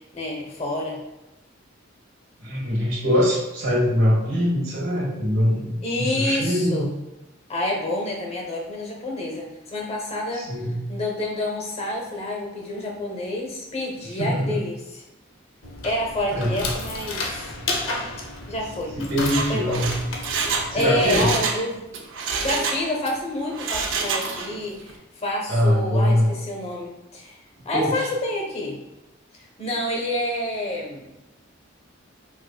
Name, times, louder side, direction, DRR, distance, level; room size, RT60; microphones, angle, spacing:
voice 1, 0.1-1.0 5.8-6.9 7.5-10.5 10.9-15.0 15.8-17.5 17.9-18.1 18.5-18.9 19.5-19.8 20.7-21.8 22.4-27.4 27.6-28.8 29.6-31.1, left 1 dB, 35° left, 0 dB, 0.7 m, -28 dB
voice 2, 2.4-6.8 10.3-10.8 14.0-14.6 16.3-16.6 19.0-19.9 20.7-21.4 25.5-26.3 27.7-28.1, equal, 90° right, -4 dB, 1.3 m, -22 dB
sound 1, 15.6-21.3, left 2 dB, 85° left, 0.6 m, -33 dB
Mechanisms, 19.1-21.6 21.9-23.1 23.5-24.6 24.9-25.0, right 4 dB, 70° right, 0.4 m, -27 dB
4.4 x 2.5 x 2.2 m, 0.96 s
head